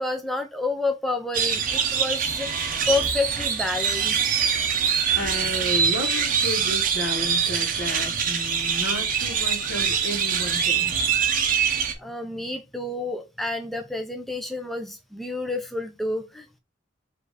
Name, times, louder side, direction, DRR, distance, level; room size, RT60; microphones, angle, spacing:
voice 1, 0.0-4.4 12.0-16.6, left 2 dB, ahead, 0.4 m, -29 dB
sound 1, 1.3-11.9, right 7 dB, 45° right, 0.7 m, -24 dB
voice 2, 5.2-10.9, left 1 dB, 65° left, 1.1 m, -32 dB
5.0 x 2.5 x 3.9 m
head